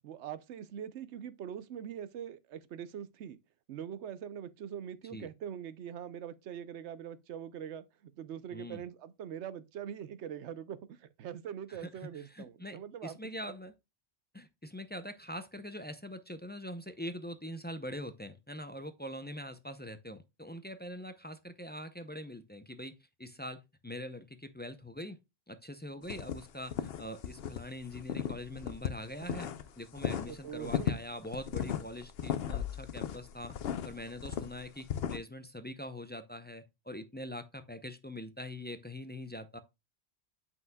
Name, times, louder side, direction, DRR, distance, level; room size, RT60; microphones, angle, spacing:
voice 1, 0.0-3.4 3.7-13.2 30.3-30.9, right 9 dB, 80° right, 0.9 m, -43 dB
voice 2, 8.5-8.8 11.7-13.7 14.3-22.9 23.2-25.2 25.5-33.6 33.8-39.6, left 1 dB, 15° left, 0.4 m, -43 dB
sound 1, 26.1-27.6 27.9-29.7 30.0-35.2, left 9 dB, 65° left, 0.8 m, -36 dB
8.1 x 5.6 x 2.2 m
omnidirectional pair, 1.1 m